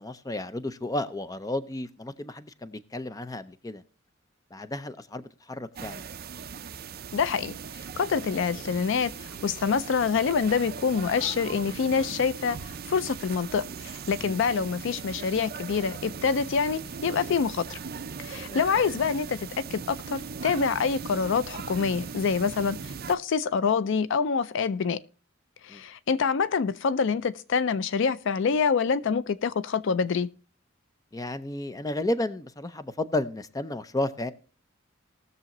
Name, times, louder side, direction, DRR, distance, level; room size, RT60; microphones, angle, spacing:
voice 1, 0.0-3.8 4.5-6.0 14.2-14.4 18.4-18.6 25.7-25.8 31.1-34.3, left 1 dB, 20° left, 0.5 m, -32 dB
sound 1, 5.8-23.2, right 6 dB, 50° right, 0.5 m, -39 dB
voice 2, 7.1-17.8 18.2-25.0 25.6-30.3, left 5 dB, 65° left, 0.4 m, -26 dB
19.5 x 6.8 x 3.0 m
head